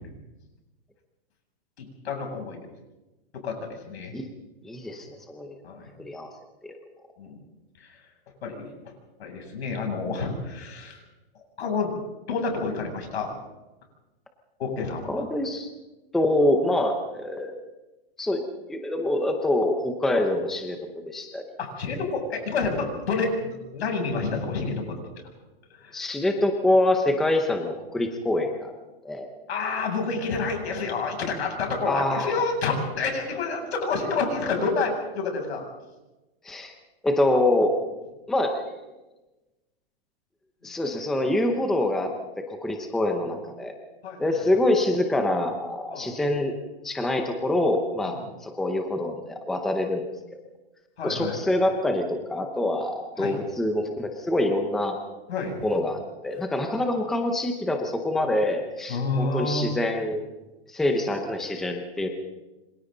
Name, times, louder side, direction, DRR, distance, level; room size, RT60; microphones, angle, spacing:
voice 1, 1.8-2.6 3.4-4.1 5.6-5.9 7.2-7.4 7.8-7.9 8.4-8.7 9.2-11.0 11.6-11.9 12.3-13.3 14.6-15.2 21.6-25.0 25.8-26.0 29.5-35.6 44.0-44.3 45.9-46.1 48.0-48.3 51.0-51.3 53.2-53.4 55.3-55.7 58.9-59.6, left 4 dB, 80° left, 2 dB, 7.8 m, -29 dB
voice 2, 4.6-5.6 6.0-6.3 6.6-6.8 15.1-15.7 16.1-17.5 18.2-18.4 18.7-20.8 21.0-21.4 25.9-28.7 29.0-29.3 31.9-32.4 36.4-36.7 37.0-37.7 38.3-38.7 40.6-42.1 42.5-43.7 44.2-46.5 46.8-48.2 48.4-50.0 51.0-55.0 55.6-60.2 60.7-62.1, left 1 dB, ahead, 4 dB, 0.7 m, -25 dB
27.5 x 25.5 x 4.0 m, 1.1 s
hypercardioid pair, 175°, 31 cm